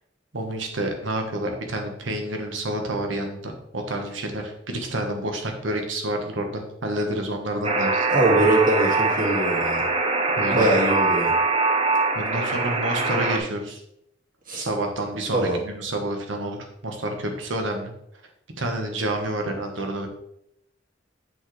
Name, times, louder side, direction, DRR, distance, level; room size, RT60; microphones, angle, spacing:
voice 1, 0.3-8.1 10.4-10.7 12.1-13.8 14.6-17.9 18.6-20.1, right 1 dB, 85° right, 3 dB, 1.4 m, -29 dB
Alarm, 7.6-13.4, right 3 dB, 30° right, 0.9 m, -23 dB
voice 2, 8.1-9.8 10.5-11.3 14.5-14.7 15.3-15.6, right 2 dB, 50° right, -3 dB, 2.3 m, -22 dB
7.6 x 6.2 x 3.3 m, 0.74 s
head